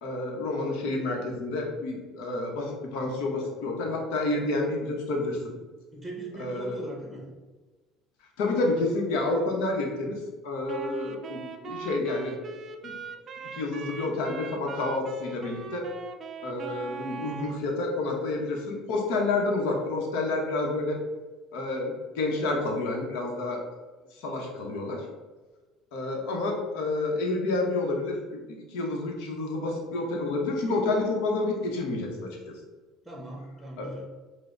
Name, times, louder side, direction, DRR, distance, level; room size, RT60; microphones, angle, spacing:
voice 1, 0.0-5.5 6.4-6.8 8.4-12.3 12.8-12.9 13.5-15.9 16.4-21.0 21.5-23.6 24.1-25.1 25.9-32.4 33.8-34.0, left 2 dB, 80° left, 1 dB, 0.9 m, -29 dB
voice 2, 5.9-7.3 33.0-34.0, right 2 dB, 5° right, -1 dB, 0.9 m, -39 dB
Wind instrument woodwind instrument, 10.7-17.6, right 5 dB, 40° right, 0.4 m, -40 dB
4.9 x 2.2 x 3.8 m, 1.3 s
supercardioid pair, 100°, 0 cm